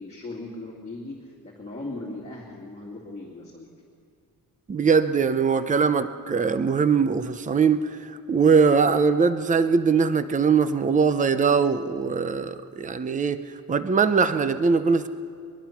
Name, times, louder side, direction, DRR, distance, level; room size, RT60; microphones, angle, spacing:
voice 1, 0.0-3.7, left 2 dB, 15° left, -3 dB, 2.4 m, -38 dB
voice 2, 4.7-13.4 13.7-15.1, right 5 dB, 20° right, 11 dB, 0.6 m, -21 dB
22.5 x 22.0 x 5.9 m, 2.3 s
wide cardioid pair, 170°, 38 cm